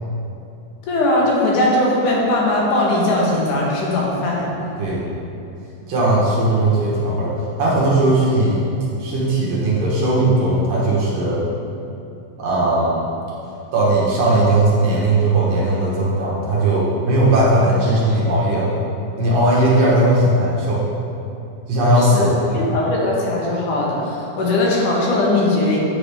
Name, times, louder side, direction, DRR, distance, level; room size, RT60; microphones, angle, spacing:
voice 1, 0.9-4.5 22.0-25.8, left 1 dB, 80° left, -4 dB, 2.8 m, -19 dB
voice 2, 5.9-8.6 9.0-11.4 12.4-13.0 13.7-18.7 19.2-20.8 21.7-22.8, right 1 dB, 60° right, -6 dB, 2.2 m, -18 dB
8.8 x 6.0 x 3.5 m, 2.8 s
omnidirectional pair, 3.6 m